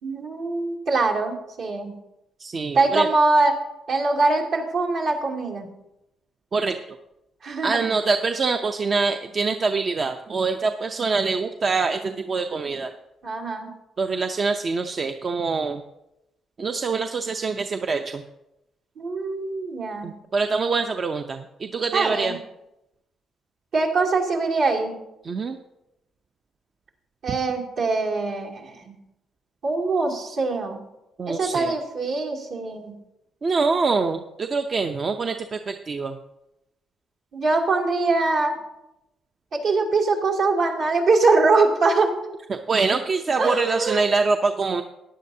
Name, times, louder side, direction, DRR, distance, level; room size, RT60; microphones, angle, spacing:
voice 1, 0.0-1.9 2.7-3.5 3.9-5.7 7.4-7.8 13.2-13.7 19.0-20.1 21.9-22.3 23.7-25.0 27.2-28.9 29.6-30.8 31.3-32.9 37.3-38.5 39.5-42.1 43.4-44.0, right 3 dB, 70° right, -3 dB, 2.7 m, -23 dB
voice 2, 2.4-3.1 6.5-6.8 7.6-12.9 14.0-15.8 16.6-18.2 20.0-22.4 25.2-25.6 31.2-31.7 33.4-36.2 42.5-44.8, right 4 dB, 40° right, 6 dB, 0.6 m, -24 dB
15.0 x 10.0 x 2.7 m, 0.90 s
cardioid pair, 90°, 0 cm